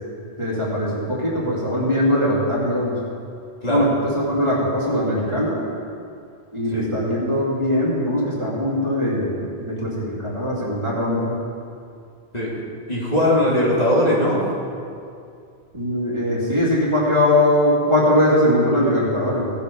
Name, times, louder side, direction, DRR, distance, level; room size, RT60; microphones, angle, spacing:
voice 1, 0.4-3.0 3.7-5.6 6.5-11.4 15.7-19.5, left 1 dB, 25° right, -7 dB, 2.8 m, -21 dB
voice 2, 12.9-14.4, left 1 dB, 35° left, -6 dB, 2.5 m, -19 dB
17.5 x 7.2 x 5.4 m, 2.4 s
omnidirectional pair, 1.2 m